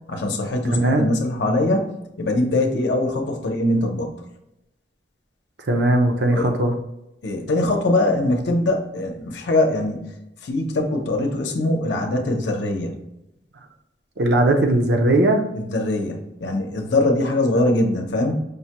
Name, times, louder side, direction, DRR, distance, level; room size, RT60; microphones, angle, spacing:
voice 1, 0.1-1.9 2.2-4.1 6.3-6.5 7.2-10.0 10.4-13.0 15.6-18.4, left 2 dB, 85° left, 2 dB, 0.7 m, -22 dB
voice 2, 0.7-1.1 5.7-6.8 14.2-15.4, right 1 dB, 70° right, 4 dB, 0.6 m, -18 dB
5.2 x 2.2 x 2.9 m, 0.87 s
head